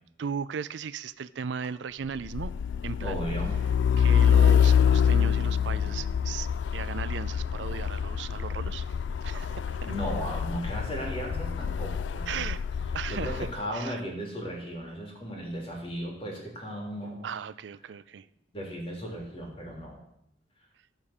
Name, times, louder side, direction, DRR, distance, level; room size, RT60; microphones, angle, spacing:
voice 1, 0.2-2.5 2.8-3.2 4.0-6.5 6.7-8.9 9.2-9.8 12.3-12.6 12.9-13.5 13.7-14.0 17.2-18.3, right 6 dB, 80° right, 17 dB, 0.4 m, -36 dB
Truck, 2.2-13.6, left 8 dB, 80° left, 0.3 m, -26 dB
voice 2, 3.0-3.6 9.8-12.4 13.1-17.3 18.5-20.0, equal, 30° left, -1 dB, 3.2 m, -36 dB
14.5 x 5.0 x 7.2 m, 0.78 s
head